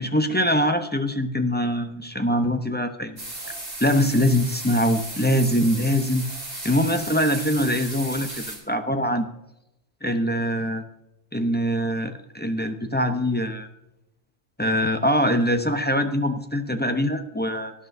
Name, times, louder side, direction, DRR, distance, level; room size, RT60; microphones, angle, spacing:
voice 1, 0.0-3.2 3.5-3.6 3.8-6.2 6.6-9.3 10.0-10.8 11.3-13.7 14.6-17.7, equal, 10° left, 6 dB, 0.5 m, -23 dB
sound 1, 3.2-8.6, right 2 dB, 45° right, 4.0 m, -35 dB
18.5 x 11.0 x 2.7 m, 0.89 s
omnidirectional pair, 1.3 m